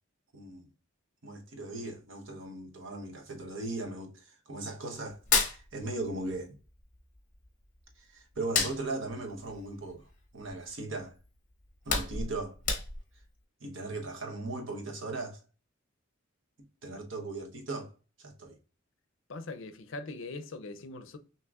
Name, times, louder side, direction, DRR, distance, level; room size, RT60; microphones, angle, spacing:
voice 1, 0.3-0.7 1.2-6.5 8.0-11.1 11.8-12.6 13.6-15.4 16.8-17.9 18.2-18.6, right 2 dB, 70° right, 0.9 m, -38 dB
Hands, 5.1-6.4 6.7-7.9 8.3-10.7 11.1-11.2 11.6-13.2, left 5 dB, 40° left, 1.0 m, -31 dB
voice 2, 19.3-21.2, left 3 dB, 70° left, 0.5 m, -41 dB
6.0 x 2.8 x 2.4 m
head